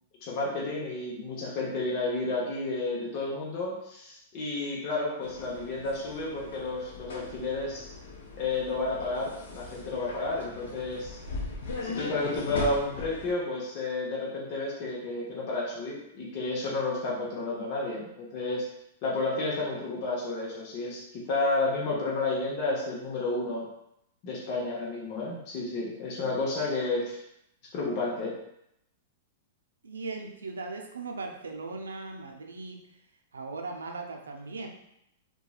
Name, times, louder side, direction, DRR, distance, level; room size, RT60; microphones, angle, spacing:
voice 1, 0.2-7.9 8.4-11.2 11.8-18.6 19.0-23.6 24.2-27.2 27.7-28.3, left 2 dB, 45° left, -5 dB, 0.7 m, -31 dB
sound 1, 5.2-13.3, left 3 dB, 75° left, 0.7 m, -39 dB
voice 2, 29.8-33.0 33.3-34.7, right 3 dB, 90° right, 3 dB, 0.4 m, -38 dB
2.8 x 2.2 x 2.3 m, 0.79 s
hypercardioid pair, 115°, 0 cm